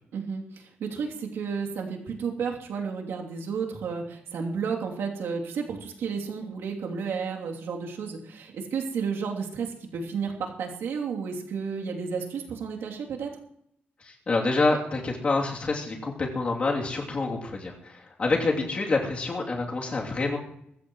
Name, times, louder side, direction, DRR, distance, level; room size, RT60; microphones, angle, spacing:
voice 1, 0.1-13.3, right 5 dB, 90° right, -1 dB, 3.0 m, -32 dB
voice 2, 14.0-20.4, left 3 dB, 30° left, -1 dB, 3.0 m, -27 dB
23.5 x 15.0 x 3.2 m, 0.74 s
wide cardioid pair, 180°, 4 cm